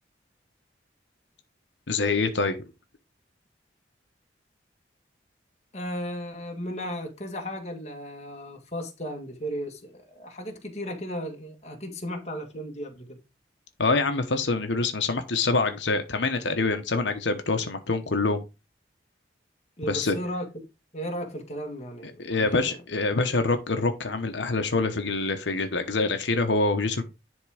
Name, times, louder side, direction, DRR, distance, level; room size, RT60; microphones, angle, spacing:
voice 1, 1.9-2.6 13.8-18.4 19.9-20.2 22.2-27.0, left 3 dB, 85° left, 1.0 m, -25 dB
voice 2, 5.7-13.2 19.8-20.7 20.9-22.8, equal, 35° left, 1.7 m, -35 dB
10.5 x 3.6 x 4.9 m
head